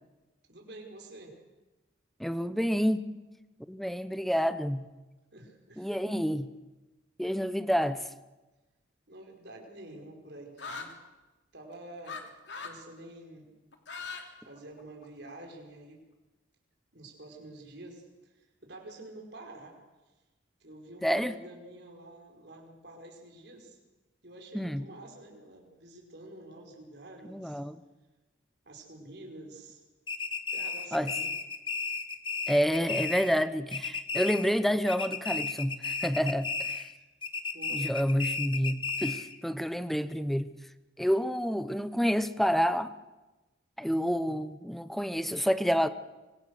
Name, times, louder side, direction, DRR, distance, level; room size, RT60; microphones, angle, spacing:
voice 1, 0.5-1.4 5.3-6.2 9.1-10.9 11.5-12.2 12.6-13.5 14.4-16.0 16.9-19.8 20.6-23.8 24.2-27.6 28.7-29.8 30.5-31.3 37.0-37.1 37.5-37.9, right 1 dB, 60° right, 1 dB, 5.2 m, -48 dB
voice 2, 2.2-3.1 3.7-4.9 5.8-6.5 7.2-8.1 21.0-21.4 24.5-24.8 27.3-27.8 30.9-31.1 32.5-36.9 37.7-40.5 41.0-42.9 43.8-45.9, equal, ahead, 12 dB, 0.8 m, -28 dB
sound 1, 10.6-10.9 12.1-12.2 12.5-12.8 13.7-14.2 14.6-15.3, left 4 dB, 65° left, 3.1 m, -40 dB
sound 2, 30.1-33.4 33.7-34.6 34.9-36.9 37.2-39.4, left 4 dB, 25° left, 1.3 m, -34 dB
25.5 x 25.0 x 6.7 m, 1.1 s
head